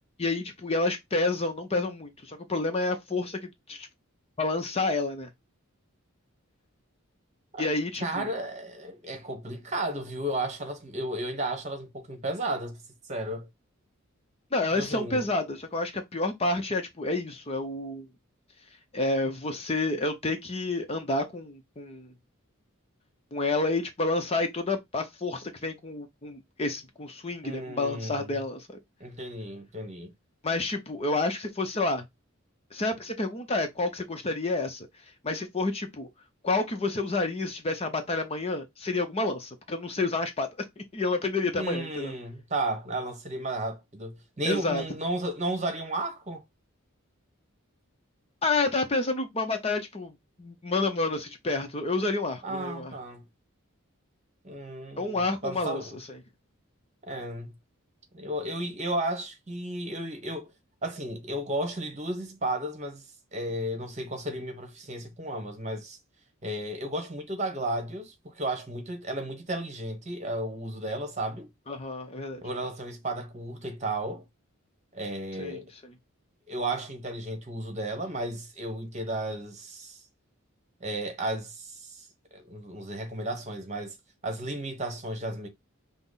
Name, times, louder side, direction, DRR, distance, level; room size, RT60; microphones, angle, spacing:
voice 1, 0.2-3.9 4.4-5.3 7.6-8.3 14.5-18.1 18.9-22.1 23.3-28.8 30.4-32.0 32.7-34.9 35.2-36.1 36.4-42.1 44.4-44.8 48.4-52.9 55.0-56.2 71.7-72.4 75.4-75.9, left 2 dB, 30° left, 0.6 m, -29 dB
voice 2, 8.0-12.8 13.1-13.5 14.7-15.3 27.4-28.3 29.0-30.1 41.5-46.4 52.4-53.3 54.4-56.0 57.1-57.5 58.1-60.5 60.8-63.0 63.3-66.0 66.4-71.5 72.4-74.2 74.9-75.7 76.5-80.0 80.8-82.1 82.3-83.9 84.2-85.5, right 1 dB, 35° right, 1.2 m, -33 dB
5.8 x 2.0 x 3.9 m
head